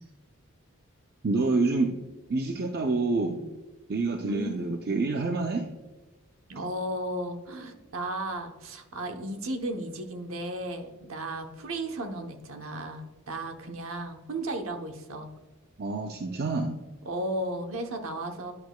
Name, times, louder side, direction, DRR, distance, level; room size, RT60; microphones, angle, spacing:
voice 1, 1.2-1.9 2.3-3.4 3.9-5.7 15.8-16.8, right 3 dB, 45° right, 4 dB, 0.5 m, -27 dB
voice 2, 4.2-4.7 6.5-15.3 17.0-18.5, right 1 dB, 70° right, 5 dB, 0.9 m, -34 dB
10.5 x 6.1 x 2.3 m, 1.2 s
head